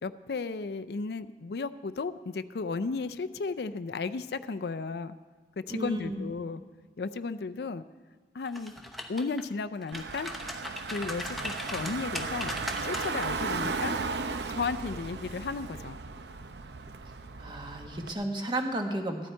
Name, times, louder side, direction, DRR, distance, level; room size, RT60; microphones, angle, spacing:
voice 1, 0.0-5.2 5.7-6.6 7.0-7.8 8.3-8.7 9.1-10.3 10.9-14.0 14.5-16.0, left 4 dB, 65° left, 11 dB, 0.4 m, -34 dB
voice 2, 5.7-6.3 17.4-19.3, right 1 dB, 25° right, 3 dB, 1.2 m, -33 dB
sound 1, 8.5-9.4 9.8-13.3 13.6-13.9, left 1 dB, ahead, 0.8 m, -38 dB
Car / Engine, 9.9-18.1, right 4 dB, 75° right, 0.7 m, -36 dB
15.0 x 12.0 x 4.5 m, 1.4 s
head